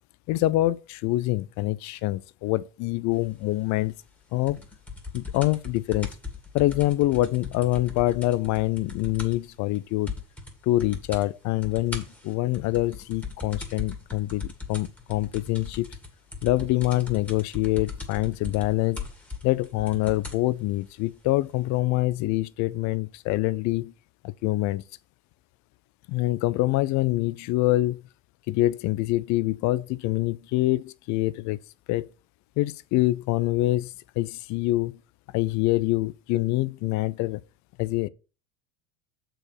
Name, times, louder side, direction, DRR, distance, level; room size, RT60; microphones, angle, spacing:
voice 1, 0.3-3.9 4.3-4.6 5.1-6.1 6.5-10.1 10.6-15.9 16.4-19.0 19.4-23.9 24.2-24.8 26.1-28.0 28.5-31.6 31.9-32.1 32.6-34.9 35.3-37.4 37.8-38.1, left 17 dB, 55° left, 0.6 m, -25 dB
sound 1, 4.5-9.5 9.7-9.8 10.1-10.5 10.8-11.3 11.6-20.5 21.2-21.3, left 4 dB, 5° left, 2.0 m, -38 dB
6.7 x 4.5 x 6.5 m
supercardioid pair, 110°, 34 cm